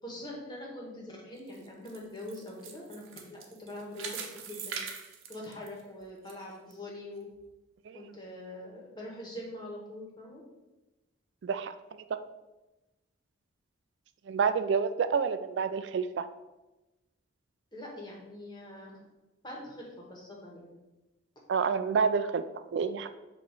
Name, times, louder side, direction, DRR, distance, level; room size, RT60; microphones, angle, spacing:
voice 1, 0.0-4.8 5.3-7.3 7.9-10.4 17.7-19.0 19.4-20.7, left 1 dB, 20° left, -2 dB, 1.6 m, -43 dB
sound 1, 1.4-6.3 6.7-6.8 7.4-7.5, right 6 dB, 90° right, 0.9 m, -42 dB
voice 2, 11.4-11.7 14.3-16.3 21.5-23.2, right 6 dB, 65° right, 11 dB, 0.3 m, -28 dB
7.0 x 3.0 x 6.0 m, 1.1 s
head